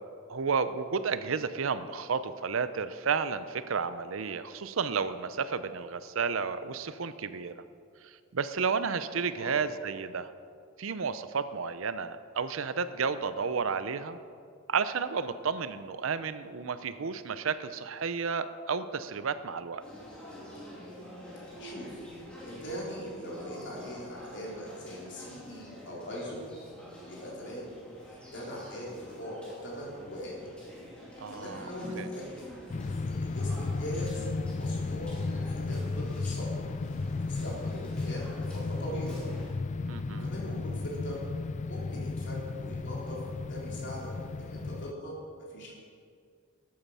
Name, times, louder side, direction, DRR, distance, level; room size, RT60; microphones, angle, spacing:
voice 1, 0.3-7.5 8.0-10.3 10.8-14.2 14.7-19.8 31.2-31.7 32.0-32.1 39.9-40.3, right 5 dB, 70° right, 13 dB, 0.6 m, -32 dB
sound 1, 19.8-39.5, equal, 5° left, 2.7 m, -47 dB
voice 2, 22.4-26.4 27.0-27.7 28.1-30.5 31.3-32.5 33.1-34.3 34.5-36.6 37.2-39.2 40.2-41.2 41.7-43.2 43.5-44.1 44.4-45.7, equal, 55° left, -4 dB, 3.5 m, -41 dB
sound 2, 32.7-44.9, left 3 dB, 35° left, 0.3 m, -34 dB
13.5 x 8.7 x 5.6 m, 2.3 s
head